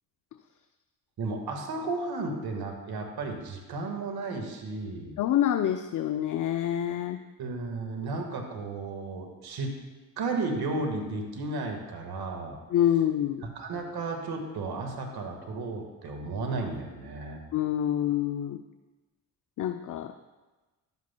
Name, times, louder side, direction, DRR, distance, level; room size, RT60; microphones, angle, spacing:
voice 1, 1.2-5.1 7.4-9.7 10.2-12.6 13.6-17.4, right 3 dB, 60° right, 3 dB, 1.7 m, -33 dB
voice 2, 5.2-7.2 12.7-13.4 17.5-18.6 19.6-20.2, left 11 dB, 45° left, 8 dB, 0.5 m, -26 dB
11.5 x 8.2 x 2.2 m, 1.2 s
supercardioid pair, 50°, 42 cm